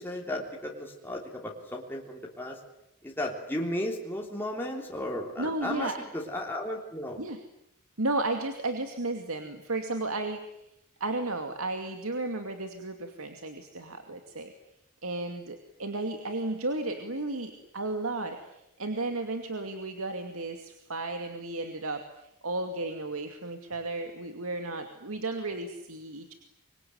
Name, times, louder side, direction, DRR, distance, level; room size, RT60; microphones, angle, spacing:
voice 1, 0.0-2.6 3.0-7.2, left 1 dB, 10° left, -1 dB, 3.3 m, -34 dB
voice 2, 5.4-6.0 7.2-7.4 8.0-10.4 11.0-14.5 15.0-26.3, right 2 dB, 80° right, 6 dB, 2.5 m, -33 dB
26.0 x 23.5 x 9.5 m, 0.82 s
head